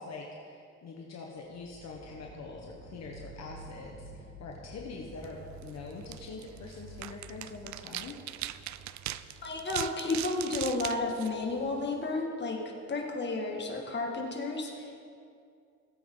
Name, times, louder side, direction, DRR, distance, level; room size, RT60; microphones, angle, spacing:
voice 1, 0.0-8.2, left 3 dB, 60° left, 0 dB, 1.3 m, -44 dB
sound 1, 1.5-11.4, right 1 dB, 90° right, 2.2 m, -51 dB
sound 2, 5.1-12.1, right 13 dB, 70° right, 0.5 m, -41 dB
voice 2, 9.4-12.6 12.9-15.0, left 3 dB, 35° left, 0 dB, 2.0 m, -32 dB
17.0 x 8.5 x 3.9 m, 2.4 s
cardioid pair, 90°, 30 cm